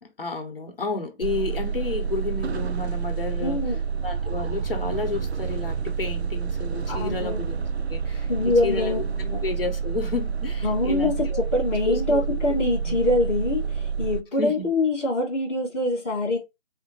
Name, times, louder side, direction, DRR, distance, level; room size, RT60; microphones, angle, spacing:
voice 1, 0.0-3.6 4.0-7.6 7.9-9.0 9.4-11.4 11.8-12.4 12.8-13.0 14.4-14.7, left 3 dB, 50° left, 1.2 m, -31 dB
sound 1, 1.2-14.2, right 6 dB, 60° right, 0.6 m, -28 dB
voice 2, 3.4-3.8 6.9-7.4 8.3-9.4 10.6-11.3 11.5-16.4, left 2 dB, 10° left, 0.9 m, -24 dB
4.2 x 2.8 x 4.1 m
figure-of-eight pair, 165°, 36 cm